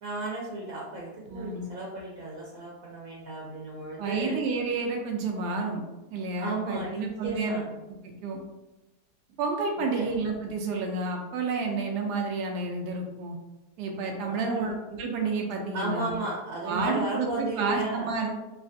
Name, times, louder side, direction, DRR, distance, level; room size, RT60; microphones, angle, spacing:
voice 1, 0.0-4.4 6.4-7.7 9.9-10.1 14.3-14.7 15.7-18.1, right 2 dB, 65° right, -4 dB, 1.1 m, -34 dB
voice 2, 1.3-1.7 4.0-5.8 6.1-7.6 8.2-8.4 9.4-13.4 13.8-16.1 16.7-18.3, right 4 dB, 90° right, 2 dB, 1.1 m, -30 dB
3.3 x 3.0 x 2.5 m, 1.0 s
omnidirectional pair, 1.7 m